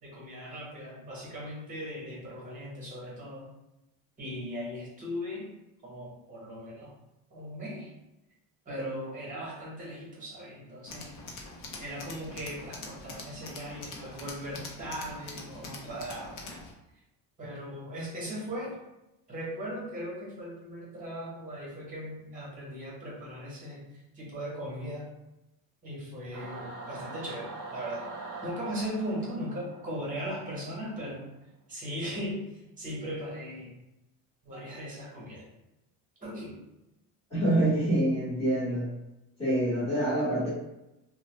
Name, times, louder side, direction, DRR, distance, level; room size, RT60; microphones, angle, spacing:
voice 1, 0.0-3.4 4.2-5.5 5.8-6.9 7.3-7.9 8.6-11.1 11.8-16.6 17.4-18.7 19.3-25.1 25.8-28.1 28.4-31.2 31.7-33.8 34.4-35.5 36.2-36.6, equal, 20° right, -4 dB, 1.1 m, -38 dB
Tools, 10.9-16.7, left 3 dB, 50° left, 0.6 m, -44 dB
Singing / Musical instrument, 26.3-31.0, right 3 dB, 50° right, 0.6 m, -43 dB
voice 2, 37.3-38.9 39.4-40.5, right 1 dB, 15° left, -9 dB, 1.1 m, -26 dB
2.7 x 2.1 x 3.0 m, 0.90 s
cardioid pair, 155°, 42 cm